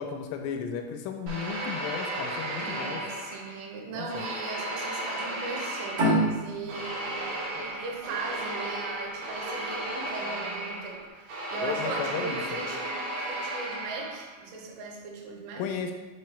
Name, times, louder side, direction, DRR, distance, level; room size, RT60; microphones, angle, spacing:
voice 1, 0.0-3.0 3.9-4.2 11.6-12.6 15.6-15.9, left 7 dB, 85° left, 4 dB, 3.0 m, -34 dB
sound 1, 1.3-3.7 4.1-14.4, right 1 dB, 65° right, 2.3 m, -34 dB
voice 2, 2.6-15.7, right 3 dB, 85° right, 0 dB, 3.4 m, -38 dB
sound 2, 6.0-9.2, right 1 dB, 45° right, 2.4 m, -28 dB
6.8 x 4.9 x 3.2 m, 1.2 s
omnidirectional pair, 5.8 m